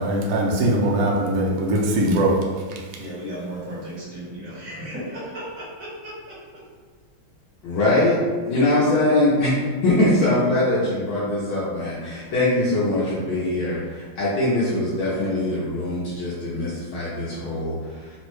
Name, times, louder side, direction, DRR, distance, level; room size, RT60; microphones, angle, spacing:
voice 1, 0.0-2.8, right 1 dB, 75° right, -1 dB, 1.2 m, -21 dB
voice 2, 3.0-6.4, right 1 dB, 55° right, -8 dB, 1.1 m, -35 dB
voice 3, 7.6-18.2, left 1 dB, 80° left, -9 dB, 1.5 m, -22 dB
3.9 x 2.1 x 3.0 m, 1.5 s
omnidirectional pair, 2.3 m